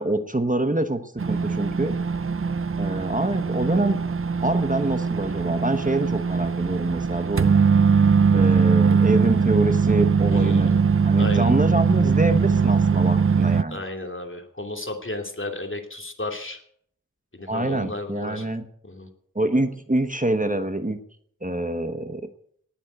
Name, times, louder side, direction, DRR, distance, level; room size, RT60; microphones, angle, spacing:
voice 1, 0.0-1.9 2.8-4.0 4.4-7.5 8.3-10.7 11.0-13.8 17.5-18.6 19.3-21.0 21.4-22.3, right 1 dB, 25° right, 8 dB, 1.2 m, -25 dB
sound 1, 1.2-13.6, right 5 dB, 40° right, 0.5 m, -21 dB
voice 2, 10.3-10.8 11.2-11.5 13.7-16.6 17.3-18.5 18.8-19.1, left 2 dB, 40° left, 4 dB, 2.8 m, -33 dB
19.0 x 7.4 x 8.0 m, 0.64 s
wide cardioid pair, 60°, 33 cm